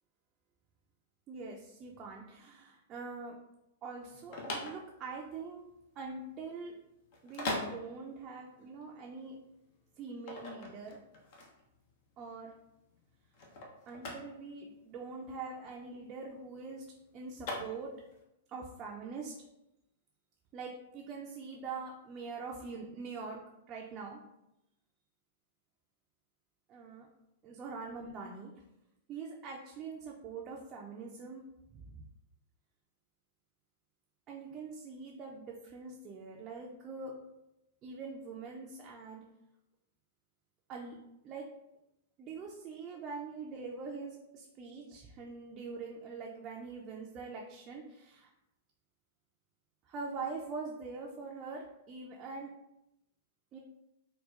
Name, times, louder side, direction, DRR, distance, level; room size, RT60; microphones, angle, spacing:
voice 1, 1.3-3.4 3.8-5.7 6.0-6.8 7.2-9.4 10.0-11.0 12.2-12.5 13.9-16.9 17.1-17.9 18.5-19.3 20.5-23.4 23.7-24.2 26.7-27.1 27.4-28.5 29.1-31.4 31.7-32.0 34.3-37.1 37.8-39.2 40.7-41.0 41.2-41.5 42.2-48.3 49.9-52.5 53.5-53.6, right 4 dB, 35° right, -2 dB, 0.4 m, -43 dB
sound 1, 4.0-18.2, left 2 dB, 55° left, 0.7 m, -42 dB
4.1 x 2.1 x 2.4 m, 0.88 s
hypercardioid pair, 110°, 0 cm